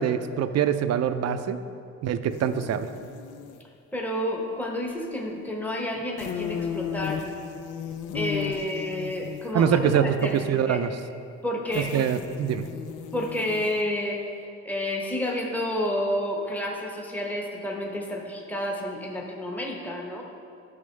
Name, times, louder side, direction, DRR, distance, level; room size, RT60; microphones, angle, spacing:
voice 1, 0.0-1.6 2.0-2.9 9.5-10.9 11.8-12.7, right 9 dB, 60° right, 10 dB, 0.5 m, -24 dB
sound 1, 2.3-3.6 6.2-10.5 11.7-14.0, left 8 dB, 80° left, 0.5 m, -35 dB
voice 2, 3.9-7.2 8.1-10.8 11.4-12.1 13.1-14.2 14.6-20.2, left 1 dB, 5° left, -1 dB, 1.0 m, -30 dB
10.5 x 6.0 x 3.3 m, 2.5 s
cardioid pair, 90°, 30 cm